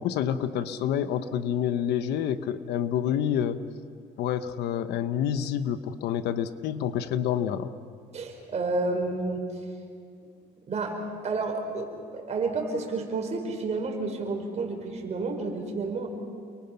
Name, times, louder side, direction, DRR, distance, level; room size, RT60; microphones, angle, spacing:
voice 1, 0.0-3.6 4.2-7.7, left 9 dB, 80° left, 11 dB, 1.1 m, -28 dB
voice 2, 8.1-9.6 10.7-11.0 11.2-16.1, right 3 dB, 40° right, 2 dB, 5.3 m, -30 dB
30.0 x 23.0 x 5.9 m, 2.3 s
cardioid pair, 110°, 17 cm